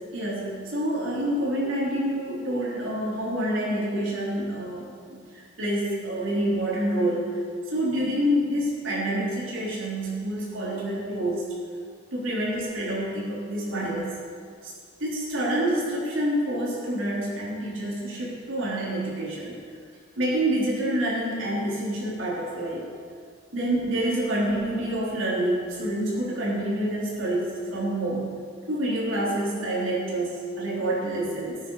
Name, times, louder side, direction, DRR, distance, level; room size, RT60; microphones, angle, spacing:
voice 1, 0.1-11.5 12.1-14.2 14.6-14.7 15.0-19.6 20.2-22.9 23.5-28.3 28.7-31.6, right 1 dB, 85° right, -5 dB, 3.9 m, -27 dB
18.0 x 8.9 x 4.9 m, 2.1 s
head